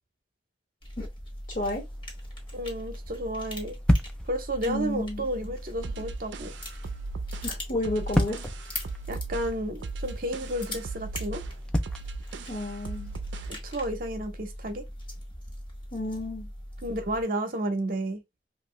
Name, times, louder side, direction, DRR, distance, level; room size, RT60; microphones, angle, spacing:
sound 1, 0.8-17.2, left 1 dB, 30° left, 1.0 m, -40 dB
voice 1, 1.5-1.8 4.7-5.3 7.4-8.4 12.5-13.1 15.9-16.5, left 1 dB, 50° left, 1.3 m, -31 dB
sound 2, 1.6-13.3, equal, 5° left, 0.4 m, -34 dB
voice 2, 2.5-3.8 4.2-6.5 9.1-11.4 13.5-14.8 16.8-18.2, right 1 dB, 55° right, 0.7 m, -32 dB
sound 3, 5.8-13.6, right 4 dB, 85° right, 0.4 m, -38 dB
2.9 x 2.4 x 3.0 m
head